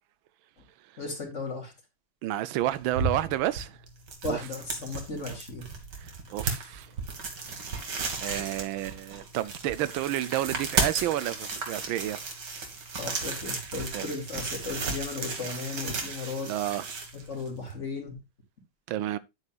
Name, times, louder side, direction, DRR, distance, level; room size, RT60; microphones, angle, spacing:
voice 1, 1.0-1.7 4.2-5.7 6.6-6.7 13.0-16.5 17.1-18.2, left 3 dB, 40° left, 2.7 m, -36 dB
voice 2, 2.2-3.8 4.3-4.4 6.0-6.9 8.2-12.2 13.9-14.1 16.5-16.9 18.9-19.2, right 13 dB, 90° right, 1.5 m, -30 dB
sound 1, 2.6-17.7, right 4 dB, 60° right, 2.4 m, -35 dB
9.7 x 9.2 x 2.4 m
omnidirectional pair, 2.1 m